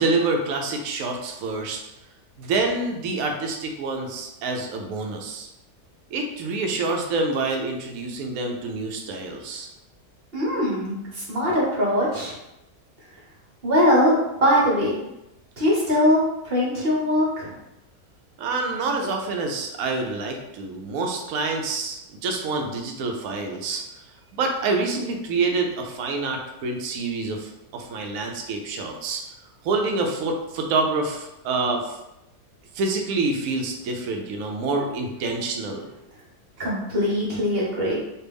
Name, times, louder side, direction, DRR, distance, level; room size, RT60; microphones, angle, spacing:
voice 1, 0.0-1.8 2.4-5.5 6.1-9.7 18.4-23.8 24.4-29.2 29.6-32.0 32.7-35.9, right 3 dB, 70° right, 2 dB, 1.0 m, -27 dB
voice 2, 10.3-12.3 13.6-15.0 15.6-17.5 36.6-38.0, left 1 dB, 45° right, -5 dB, 0.9 m, -21 dB
3.3 x 2.4 x 3.3 m, 0.89 s
omnidirectional pair, 1.7 m